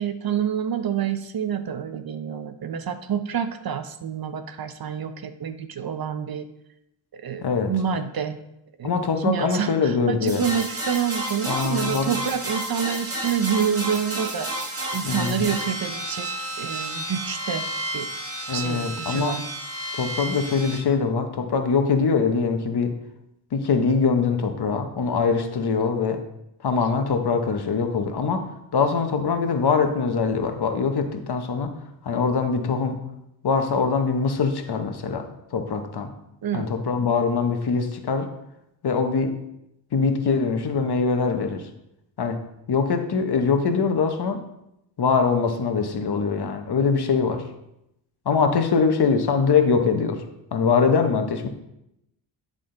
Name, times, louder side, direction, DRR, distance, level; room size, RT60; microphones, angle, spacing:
voice 1, 0.0-6.5 7.1-8.4 8.8-14.5 14.9-17.7 17.9-18.1 18.5-19.4 36.4-36.7, right 8 dB, 50° right, 9 dB, 0.6 m, -28 dB
voice 2, 7.4-7.7 8.8-10.4 11.5-12.1 15.0-15.5 18.5-19.4 19.9-22.9 23.5-26.2 26.6-28.4 28.7-31.7 32.0-33.0 33.4-35.3 35.5-36.1 36.5-38.3 38.8-39.3 39.9-41.6 42.2-42.4 42.7-44.4 45.0-47.4 48.3-50.2 50.5-51.5, left 5 dB, 55° left, 6 dB, 1.0 m, -23 dB
sound 1, 10.3-20.8, right 1 dB, 30° right, 1.4 m, -31 dB
10.0 x 3.7 x 3.8 m, 0.83 s
wide cardioid pair, 95°, 47 cm